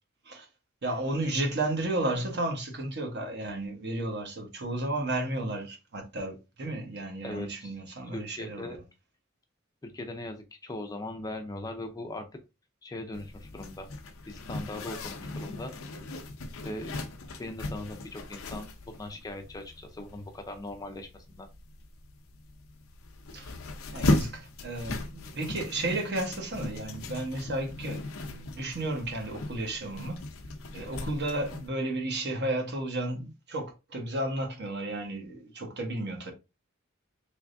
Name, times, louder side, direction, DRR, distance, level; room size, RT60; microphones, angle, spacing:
voice 1, 0.8-8.8 23.3-23.5 23.9-30.2 30.7-36.3, right 2 dB, 55° right, 1.1 m, -33 dB
voice 2, 7.2-7.7 8.1-8.8 9.8-12.2 12.8-13.9 14.3-15.7 16.6-17.0 17.4-21.5, left 2 dB, 20° left, 0.5 m, -39 dB
Zipper (clothing), 13.1-31.7, left 2 dB, 90° left, 0.6 m, -37 dB
3.5 x 3.2 x 2.5 m
head